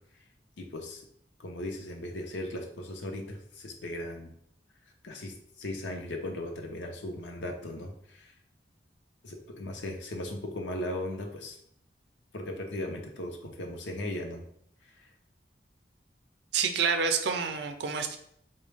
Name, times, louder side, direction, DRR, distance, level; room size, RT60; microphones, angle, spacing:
voice 1, 0.6-1.0 1.4-4.3 5.0-8.3 9.2-11.6 12.3-14.4 14.8-15.1, left 1 dB, 90° left, 2 dB, 0.6 m, -37 dB
voice 2, 16.5-18.2, right 6 dB, 70° right, 6 dB, 0.4 m, -28 dB
3.8 x 2.2 x 3.3 m, 0.69 s
head